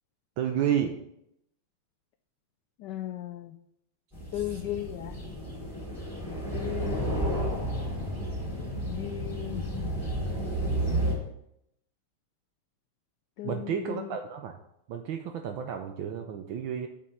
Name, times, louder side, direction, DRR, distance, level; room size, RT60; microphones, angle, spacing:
voice 1, 0.4-1.0 4.3-4.6 13.4-14.6 14.9-16.9, right 9 dB, 70° right, 5 dB, 1.3 m, -31 dB
voice 2, 2.8-3.5 4.3-5.2 6.5-7.6 8.8-9.7 13.4-14.1, left 13 dB, 80° left, 8 dB, 0.9 m, -36 dB
sound 1, 4.1-11.1, right 1 dB, ahead, 3.4 m, -32 dB
8.5 x 5.4 x 5.4 m, 0.78 s
omnidirectional pair, 2.4 m